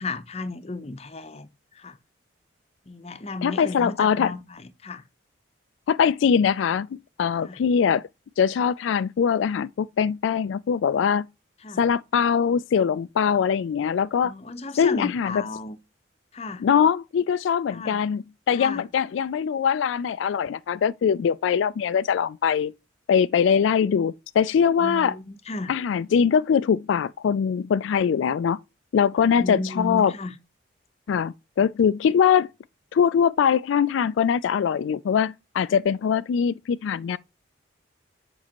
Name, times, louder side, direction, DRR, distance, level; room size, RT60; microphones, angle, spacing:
voice 1, 0.0-1.5 1.8-2.0 2.9-5.0 7.4-7.6 11.6-11.8 14.2-15.8 16.3-16.7 17.7-18.0 18.6-18.9 24.8-25.7 29.2-30.3, left 3 dB, 35° left, 0.7 m, -34 dB
voice 2, 3.4-4.3 5.9-6.9 7.2-8.0 8.4-11.2 11.8-14.3 14.8-15.4 16.6-22.7 23.1-25.2 25.7-28.6 28.9-30.1 31.1-32.5 32.9-37.2, left 7 dB, 75° left, 0.3 m, -22 dB
7.3 x 5.4 x 2.9 m
head